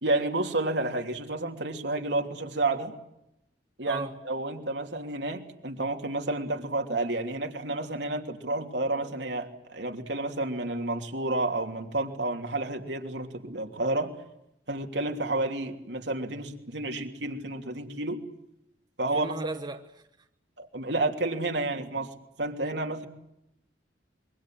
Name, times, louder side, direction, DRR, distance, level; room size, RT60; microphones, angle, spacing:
voice 1, 0.0-2.9 3.8-14.1 14.7-18.2 19.0-19.3 20.6-22.1 22.4-23.1, right 2 dB, 70° right, 3.2 m, -30 dB
voice 2, 19.1-20.0, right 2 dB, 25° right, 1.2 m, -36 dB
27.0 x 23.5 x 7.8 m
head